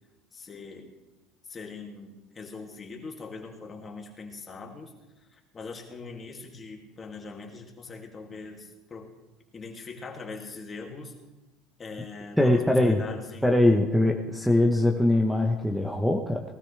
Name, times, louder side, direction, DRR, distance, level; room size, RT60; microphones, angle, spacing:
voice 1, 0.3-0.9 1.5-4.9 5.3-9.1 9.5-11.2 11.8-13.6, left 4 dB, 30° left, 1 dB, 2.4 m, -41 dB
voice 2, 12.4-13.0 13.4-16.4, left 1 dB, ahead, 3 dB, 1.0 m, -22 dB
19.5 x 13.0 x 3.4 m, 1.1 s
supercardioid pair, 115°, 0 cm